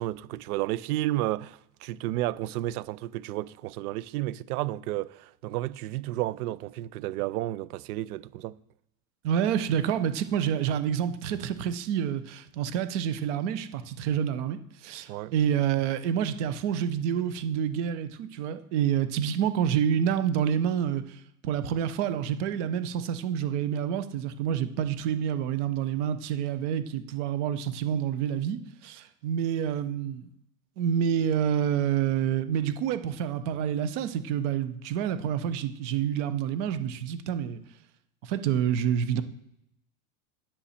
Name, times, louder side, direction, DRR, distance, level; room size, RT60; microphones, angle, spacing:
voice 1, 0.0-8.6 15.1-15.3, right 16 dB, 80° right, 0.6 m, -32 dB
voice 2, 9.2-30.3 30.8-37.6 38.2-39.2, right 9 dB, 50° right, 0.9 m, -28 dB
9.9 x 7.2 x 4.3 m
supercardioid pair, 170°, 45 cm